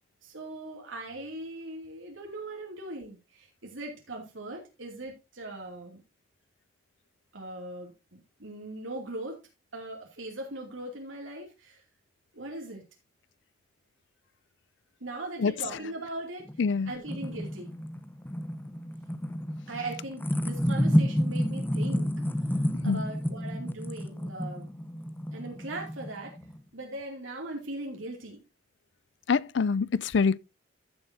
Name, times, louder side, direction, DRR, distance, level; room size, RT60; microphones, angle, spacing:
voice 1, 0.2-6.0 7.3-9.4 9.7-11.8 12.3-12.8 15.0-16.5 16.9-17.7 19.7-22.1 22.8-24.7 25.3-26.4 26.7-28.4, right 2 dB, 85° right, 2.7 m, -39 dB
sound 1, 16.5-26.6, equal, 10° left, 0.8 m, -30 dB
voice 2, 16.6-16.9 22.8-23.0 29.3-30.4, left 5 dB, 65° left, 0.4 m, -25 dB
14.5 x 7.1 x 2.8 m
head